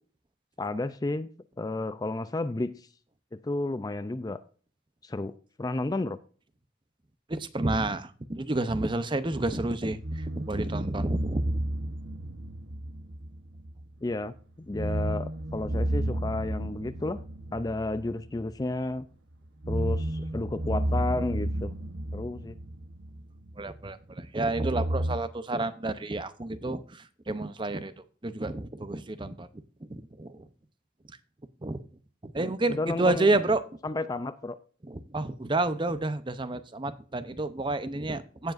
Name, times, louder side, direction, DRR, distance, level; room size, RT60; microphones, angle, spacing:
voice 1, 0.6-1.3 1.6-2.9 3.3-4.4 5.0-6.2 14.0-14.3 14.7-17.2 17.5-19.1 19.7-21.8 22.1-22.6 32.7-33.3 33.8-34.6, left 2 dB, 20° left, 13 dB, 0.4 m, -32 dB
voice 2, 7.3-11.6 23.6-27.9 28.2-29.5 29.9-30.5 31.6-31.8 32.2-33.6 34.9-38.5, right 2 dB, 25° right, 13 dB, 0.6 m, -30 dB
sound 1, 9.3-14.0 14.3-14.4 14.7-18.9 19.5-23.7 24.5-25.2, right 1 dB, 70° right, 1.0 m, -32 dB
17.0 x 7.2 x 2.5 m, 0.42 s
head